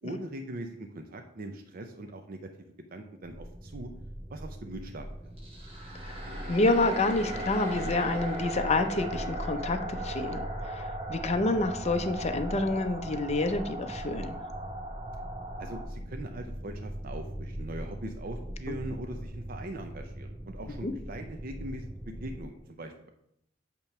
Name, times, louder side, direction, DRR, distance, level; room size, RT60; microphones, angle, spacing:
voice 1, 0.0-3.9 4.3-5.3 15.6-23.1, right 1 dB, 50° right, 5 dB, 0.6 m, -41 dB
sound 1, 3.2-22.4, equal, 5° right, 0.4 m, -41 dB
sound 2, 5.4-15.8, right 1 dB, 30° right, 1.4 m, -38 dB
voice 2, 6.5-14.4 18.7-18.8 20.8-20.9, left 2 dB, 35° left, 7 dB, 0.6 m, -28 dB
8.7 x 3.0 x 5.9 m, 0.74 s
head